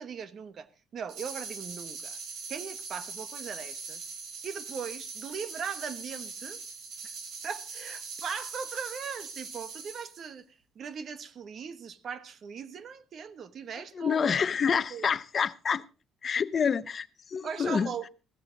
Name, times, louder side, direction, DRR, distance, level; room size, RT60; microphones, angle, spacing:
voice 1, 0.0-2.2 2.5-4.0 4.4-6.6 7.0-7.2 7.4-14.3 14.9-15.1 17.4-18.1, right 6 dB, 45° right, 1.2 m, -39 dB
sound 1, 1.1-10.3, right 5 dB, 70° right, 4.1 m, -41 dB
voice 2, 13.9-15.8 16.2-17.9, left 6 dB, 35° left, 0.7 m, -28 dB
16.0 x 13.5 x 3.9 m
cardioid pair, 140°, 0 cm